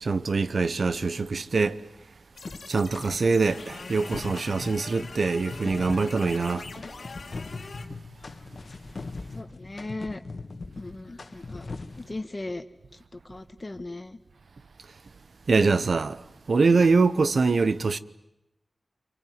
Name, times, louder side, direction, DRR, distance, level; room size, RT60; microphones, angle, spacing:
voice 1, 0.0-1.8 2.7-6.7 15.5-16.2 16.5-18.0, right 4 dB, 75° right, 0.9 m, -23 dB
sound 1, 2.4-7.9, left 4 dB, 80° left, 2.1 m, -43 dB
sound 2, 2.5-3.5 3.9-12.2, left 3 dB, 65° left, 1.7 m, -40 dB
voice 2, 9.3-10.2 10.8-11.7 12.0-12.6 12.9-14.2, left 2 dB, 40° left, 1.6 m, -38 dB
26.0 x 24.0 x 9.4 m
cardioid pair, 50°, 0 cm